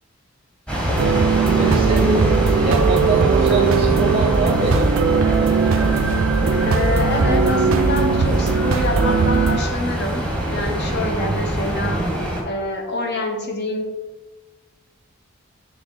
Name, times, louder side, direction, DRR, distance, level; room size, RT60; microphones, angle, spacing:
sound 1, 0.7-12.4, equal, 5° left, 1.2 m, -23 dB
sound 2, 1.0-9.6, right 5 dB, 75° right, 0.4 m, -19 dB
voice 1, 1.5-4.9, right 2 dB, 30° right, -1 dB, 0.6 m, -24 dB
voice 2, 6.6-12.0 12.4-13.9, left 2 dB, 55° left, 2 dB, 1.0 m, -26 dB
7.8 x 3.4 x 3.9 m, 1.2 s
head